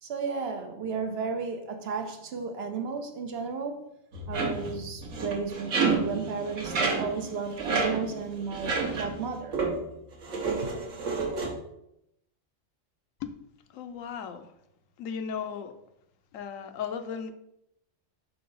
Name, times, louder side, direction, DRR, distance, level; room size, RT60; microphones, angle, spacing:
voice 1, 0.0-3.9 4.3-9.6, right 5 dB, 60° right, 0.9 m, -34 dB
sound 1, 4.1-9.3 9.5-9.9 10.2-11.5, right 4 dB, 75° right, 1.4 m, -30 dB
voice 2, 13.7-14.5 15.0-15.8 16.3-17.3, left 7 dB, 85° left, 1.0 m, -36 dB
4.8 x 3.7 x 5.3 m
omnidirectional pair, 1.3 m